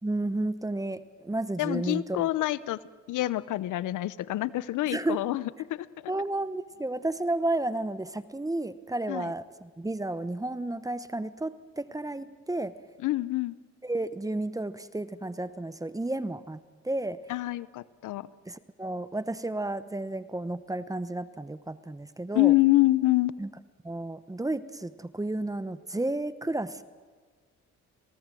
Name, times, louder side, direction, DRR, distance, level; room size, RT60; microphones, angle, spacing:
voice 1, 0.0-2.3 4.9-5.2 6.1-12.8 13.8-17.2 18.5-22.5 23.4-23.5 23.8-26.8, right 2 dB, 10° right, 14 dB, 1.0 m, -32 dB
voice 2, 1.6-2.8 3.1-5.4 5.7-5.9 9.1-9.3 13.0-13.5 17.3-18.3 22.3-23.3, left 17 dB, 80° left, 19 dB, 0.8 m, -26 dB
27.5 x 18.5 x 7.7 m, 1.5 s
cardioid pair, 90°, 30 cm